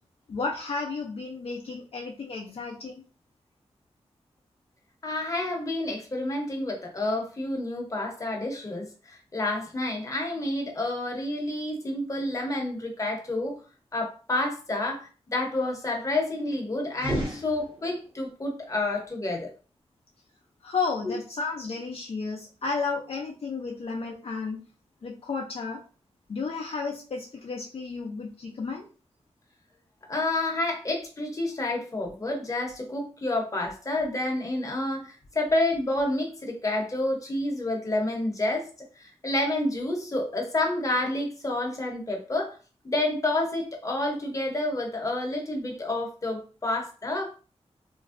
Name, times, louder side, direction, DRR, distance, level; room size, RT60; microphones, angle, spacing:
voice 1, 0.3-3.0 20.6-24.6 25.0-25.8 26.3-28.9, left 4 dB, 55° left, 0 dB, 0.5 m, -32 dB
voice 2, 5.0-13.5 13.9-19.5 21.0-21.2 30.1-38.7 39.0-42.6 42.8-47.2, left 2 dB, 30° left, 0 dB, 0.8 m, -29 dB
sound 1, 16.9-18.2, right 1 dB, 40° right, 1.2 m, -33 dB
3.0 x 2.5 x 2.5 m, 0.37 s
wide cardioid pair, 100°, 11 cm